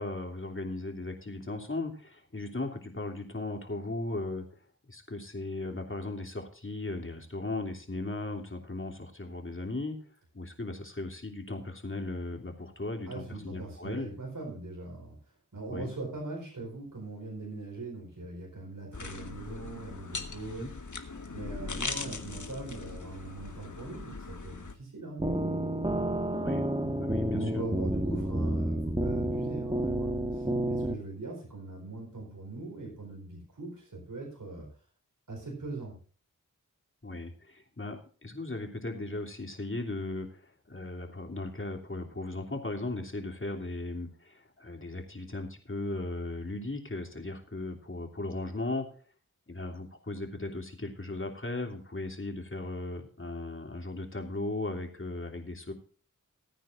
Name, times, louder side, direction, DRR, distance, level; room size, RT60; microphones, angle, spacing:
voice 1, 0.0-4.4 4.9-10.0 10.3-14.1 15.7-15.9 20.6-20.7 26.4-26.6 27.0-27.6 37.0-48.9 49.5-55.7, left 2 dB, 40° left, 2 dB, 3.1 m, -37 dB
voice 2, 13.1-15.2 15.5-20.7 21.3-25.3 27.3-34.7 35.3-36.0, right 2 dB, 80° right, -2 dB, 4.6 m, -41 dB
sound 1, 18.9-24.7, left 4 dB, 65° left, 1.5 m, -40 dB
sound 2, 25.2-31.0, right 1 dB, 15° right, 1.5 m, -30 dB
19.5 x 9.3 x 2.6 m, 0.42 s
cardioid pair, 40°, 32 cm